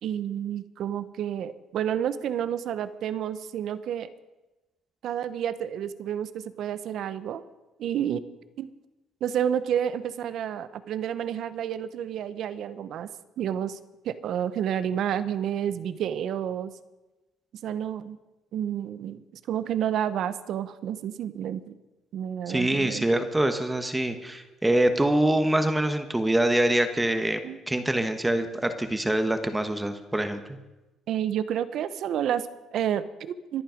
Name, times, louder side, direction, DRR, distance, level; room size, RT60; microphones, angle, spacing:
voice 1, 0.0-4.1 5.0-7.4 7.8-8.2 8.6-8.7 9.2-13.1 13.4-13.8 14.0-16.7 17.6-18.2 18.5-19.2 19.5-21.8 22.1-23.0 27.4-27.6 31.1-33.6, right 9 dB, 60° right, 13 dB, 0.9 m, -30 dB
voice 2, 22.5-27.4 27.7-30.6, right 1 dB, 10° right, 8 dB, 1.2 m, -25 dB
24.5 x 9.0 x 5.1 m, 1.1 s
cardioid pair, 130°, 0 cm